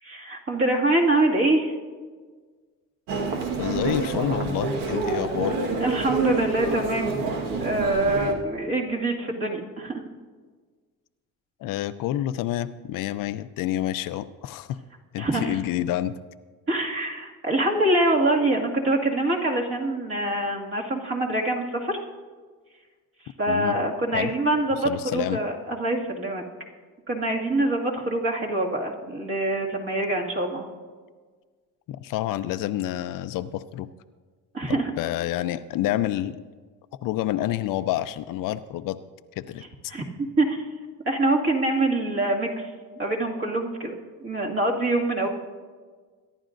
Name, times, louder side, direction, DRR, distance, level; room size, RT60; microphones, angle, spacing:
voice 1, 0.0-1.7 5.8-7.2 7.6-9.9 15.2-15.6 16.7-22.0 23.4-26.4 27.1-30.6 34.5-34.9 39.9-40.0 40.4-40.6 41.1-42.7 43.0-43.9 44.2-45.3, right 2 dB, 40° right, -1 dB, 2.2 m, -24 dB
Human voice, 3.1-8.3, right 4 dB, 80° right, 1.6 m, -27 dB
voice 2, 3.6-5.6 11.6-14.8 15.1-16.2 23.5-23.8 24.1-24.3 24.8-25.4 31.9-33.9 34.7-36.4 37.0-39.0 39.4-39.6, left 13 dB, 75° left, 12 dB, 0.6 m, -28 dB
23.5 x 11.0 x 2.6 m, 1.5 s
cardioid pair, 120°, 33 cm